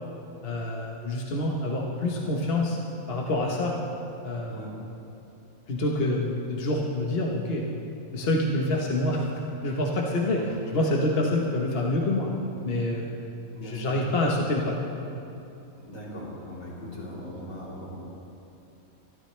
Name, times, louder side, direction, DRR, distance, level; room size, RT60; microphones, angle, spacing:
voice 1, 0.4-2.8 3.1-3.8 4.2-4.6 5.7-7.7 8.1-9.3 9.6-12.3 12.6-13.1 13.6-14.8, left 1 dB, 45° left, -2 dB, 1.4 m, -26 dB
voice 2, 13.5-14.0 15.8-17.9, equal, 75° left, -7 dB, 3.9 m, -39 dB
24.5 x 13.0 x 3.3 m, 2.8 s
omnidirectional pair, 1.4 m